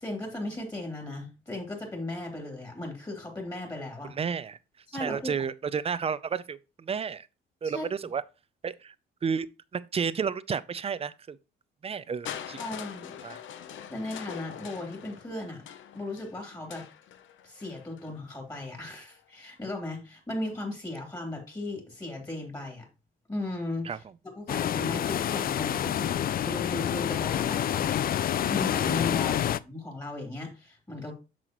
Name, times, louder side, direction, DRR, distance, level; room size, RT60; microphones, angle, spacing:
voice 1, 0.0-4.1 4.9-5.3 7.6-7.9 12.6-13.1 13.9-15.6 15.9-16.8 17.4-22.9 23.3-23.9 24.4-31.1, left 2 dB, 20° left, 3.1 m, -36 dB
voice 2, 4.1-4.6 4.9-7.3 7.6-8.2 8.6-8.9 9.2-9.5 9.7-11.4 11.8-12.6 13.2-13.4 23.8-24.1 29.2-29.3, right 6 dB, 30° right, 0.5 m, -32 dB
Crushing, 12.2-18.2 19.1-19.2, left 9 dB, 75° left, 0.8 m, -43 dB
sound 1, 24.5-29.6, left 10 dB, 50° left, 0.4 m, -28 dB
8.0 x 6.2 x 3.0 m
cardioid pair, 90°, 20 cm